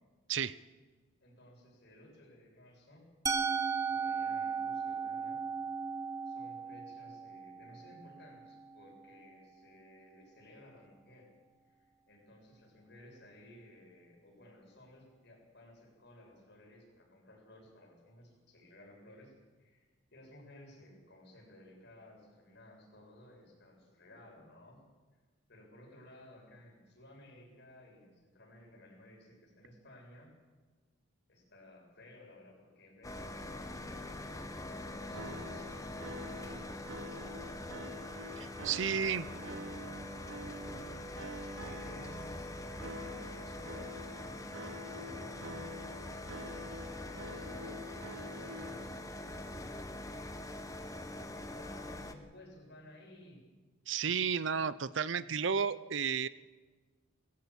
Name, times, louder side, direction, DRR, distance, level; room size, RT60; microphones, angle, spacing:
voice 1, 1.2-3.1 3.8-5.4 6.3-11.3 11.6-11.8 12.1-19.3 19.6-24.8 25.5-30.3 31.3-34.3 34.6-37.7 38.4-45.7 46.5-50.4 50.7-53.4, left 1 dB, 55° left, -1 dB, 7.6 m, -57 dB
Musical instrument, 3.3-9.2, right 5 dB, 15° right, 0.9 m, -36 dB
sound 1, 33.0-52.1, left 1 dB, 15° left, 1.2 m, -44 dB
sound 2, 35.1-48.9, equal, 90° right, 1.2 m, -47 dB
voice 2, 38.4-39.3 53.9-56.3, right 6 dB, 60° right, 16 dB, 0.6 m, -32 dB
21.0 x 15.0 x 8.7 m, 1.3 s
head